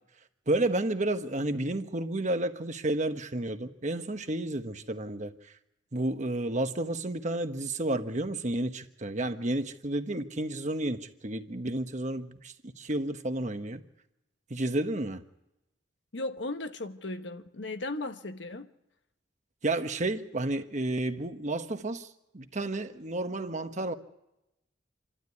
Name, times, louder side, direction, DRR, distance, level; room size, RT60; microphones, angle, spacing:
voice 1, 0.5-5.5 5.9-13.8 14.5-15.2 19.6-23.9, right 1 dB, 40° right, 1.2 m, -31 dB
voice 2, 16.1-18.7, left 2 dB, 70° left, 1.3 m, -36 dB
27.5 x 12.5 x 9.5 m
head